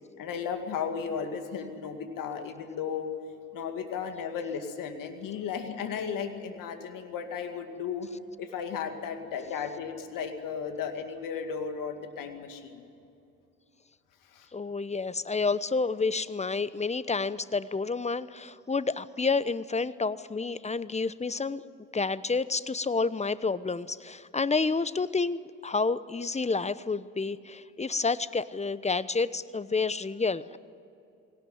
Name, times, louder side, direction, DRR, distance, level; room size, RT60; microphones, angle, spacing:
voice 1, 0.2-3.1 3.5-8.1 8.4-12.8 14.2-14.5, left 6 dB, 70° left, 7 dB, 2.3 m, -35 dB
voice 2, 14.5-21.6 21.9-30.6, left 4 dB, 20° left, 17 dB, 0.9 m, -29 dB
21.0 x 18.0 x 9.5 m, 2.6 s
hypercardioid pair, 50°, 34 cm